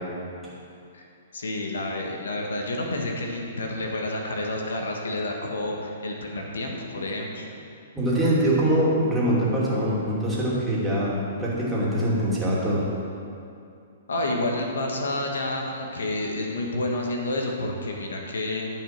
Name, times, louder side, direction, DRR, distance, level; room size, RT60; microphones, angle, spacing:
voice 1, 1.3-7.5 14.1-18.7, left 2 dB, 85° left, 1 dB, 1.6 m, -29 dB
voice 2, 7.9-11.1 11.4-12.8, right 1 dB, 10° right, -7 dB, 2.7 m, -23 dB
12.5 x 5.6 x 6.0 m, 2.5 s
hypercardioid pair, 135°, 0 cm